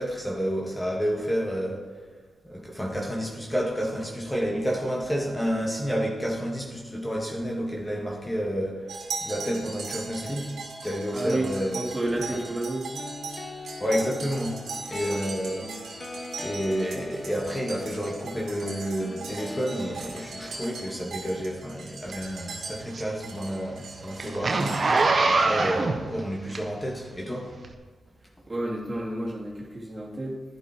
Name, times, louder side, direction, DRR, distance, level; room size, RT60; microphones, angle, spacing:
voice 1, 0.0-1.9 2.4-10.5 10.8-12.4 13.8-14.6 14.9-15.6 15.9-27.5, equal, 15° left, -1 dB, 2.3 m, -30 dB
sound 1, 8.9-25.0, right 4 dB, 80° right, 2.3 m, -39 dB
voice 2, 11.1-12.9 15.1-15.2 28.2-30.4, right 1 dB, 30° right, -3 dB, 3.2 m, -31 dB
sound 2, 12.9-20.9, left 2 dB, 40° left, 1.1 m, -40 dB
Zipper (clothing), 22.1-27.0 27.6-27.7, right 3 dB, 50° right, 1.3 m, -24 dB
11.0 x 11.0 x 4.7 m, 1.5 s
cardioid pair, 55°, 0 cm